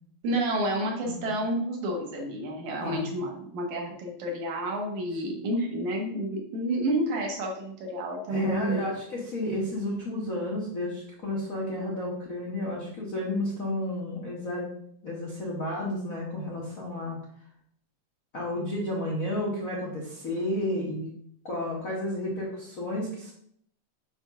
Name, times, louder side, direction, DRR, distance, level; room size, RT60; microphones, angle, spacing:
voice 1, 0.2-8.9, right 1 dB, 65° right, 0 dB, 2.7 m, -30 dB
voice 2, 2.8-3.1 5.3-5.4 8.3-14.7 15.0-17.2 18.3-21.1 21.4-23.3, left 1 dB, 85° left, -4 dB, 0.7 m, -32 dB
5.8 x 3.6 x 5.7 m, 0.67 s
omnidirectional pair, 3.8 m